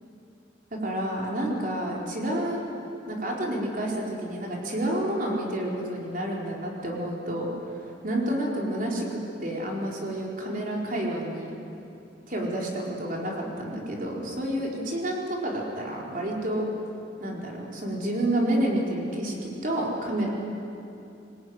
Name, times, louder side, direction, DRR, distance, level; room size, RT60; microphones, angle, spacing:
voice 1, 0.7-2.6 3.0-7.5 8.0-11.5 12.3-16.7 17.2-20.3, right 1 dB, 50° right, -2 dB, 4.6 m, -29 dB
24.0 x 19.5 x 9.7 m, 2.7 s
head